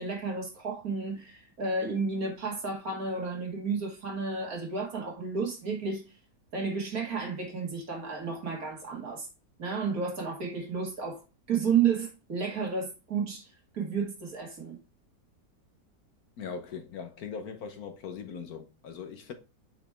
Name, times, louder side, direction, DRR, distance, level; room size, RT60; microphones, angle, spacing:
voice 1, 0.0-6.0 6.5-9.3 9.6-11.2 11.5-13.5 13.7-14.8, right 5 dB, 55° right, 2.3 m, -31 dB
voice 2, 16.4-19.3, left 6 dB, 65° left, 1.4 m, -40 dB
6.1 x 5.1 x 3.4 m
omnidirectional pair, 1.8 m